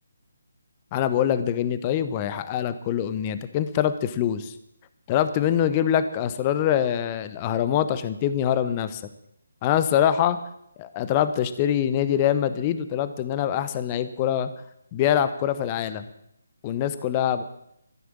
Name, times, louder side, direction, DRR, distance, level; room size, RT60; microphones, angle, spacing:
voice 1, 0.9-4.5 5.1-9.0 9.6-10.4 10.8-14.5 14.9-16.1 16.6-17.4, left 10 dB, 25° left, 12 dB, 1.0 m, -24 dB
14.5 x 11.0 x 8.7 m, 0.77 s
figure-of-eight pair, 145°, 0 cm